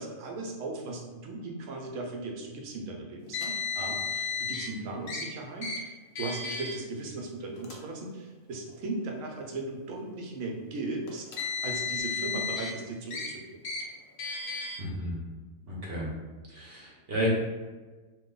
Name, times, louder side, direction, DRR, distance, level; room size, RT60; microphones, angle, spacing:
voice 1, 0.0-11.3 11.6-13.6, right 2 dB, 75° right, 1 dB, 1.0 m, -37 dB
Car, 3.3-4.7 5.1-5.2 5.6-5.8 6.2-6.7 7.6-7.7 8.7-8.8 11.1-12.7 13.1-13.3 13.6-13.8 14.2-14.8, left 5 dB, 65° left, 0.7 m, -33 dB
voice 2, 14.8-15.2 15.7-16.1 16.5-17.3, equal, 50° right, -4 dB, 0.9 m, -32 dB
2.9 x 2.1 x 3.7 m, 1.3 s
omnidirectional pair, 1.4 m